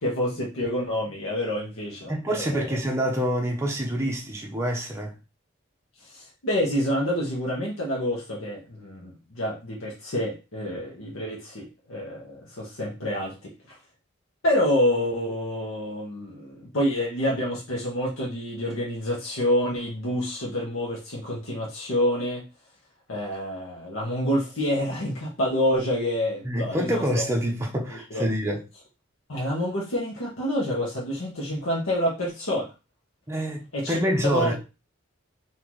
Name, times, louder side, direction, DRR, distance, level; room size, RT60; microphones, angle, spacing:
voice 1, 0.0-2.8 6.1-13.4 13.7-13.8 14.4-22.4 23.1-27.2 27.9-28.2 29.3-32.7 33.7-34.5, left 1 dB, 80° left, 1.2 m, -27 dB
voice 2, 2.1-5.2 26.5-28.6 33.3-34.5, equal, 15° right, 0.6 m, -26 dB
3.9 x 2.8 x 3.0 m
head